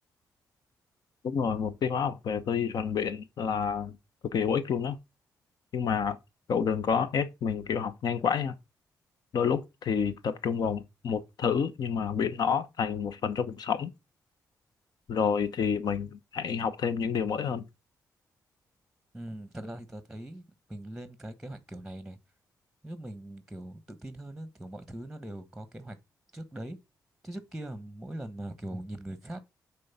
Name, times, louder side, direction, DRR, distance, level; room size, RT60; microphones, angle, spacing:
voice 1, 1.2-4.0 4.3-5.0 5.7-6.2 6.5-8.5 9.3-13.9 15.1-17.7, left 6 dB, 70° left, 1.0 m, -29 dB
voice 2, 19.1-20.4 20.7-22.2 22.8-26.0 26.3-26.8 27.2-29.4, right 1 dB, 5° right, 1.3 m, -41 dB
6.4 x 4.1 x 5.8 m
supercardioid pair, 55°, 7 cm